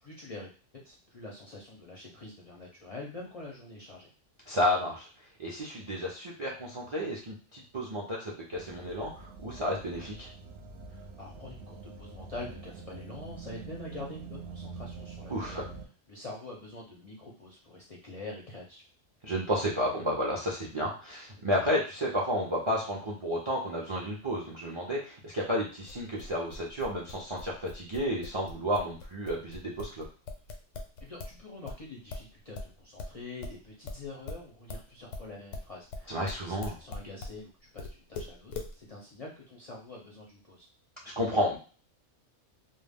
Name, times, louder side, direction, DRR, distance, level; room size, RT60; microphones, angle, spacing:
voice 1, 0.1-0.5 0.8-4.1 10.9-15.6 16.1-18.8 31.0-40.7, left 2 dB, 45° left, -3 dB, 0.4 m, -45 dB
voice 2, 4.5-5.1 5.4-10.3 15.3-15.6 19.2-30.0 36.1-36.8 41.0-41.6, equal, 45° right, -3 dB, 0.4 m, -31 dB
sound 1, 8.5-15.9, right 4 dB, 65° right, 0.8 m, -45 dB
sound 2, 25.8-31.4 31.7-37.4 37.8-38.7, left 3 dB, 85° left, 0.9 m, -41 dB
2.3 x 2.1 x 3.4 m, 0.37 s
omnidirectional pair, 1.2 m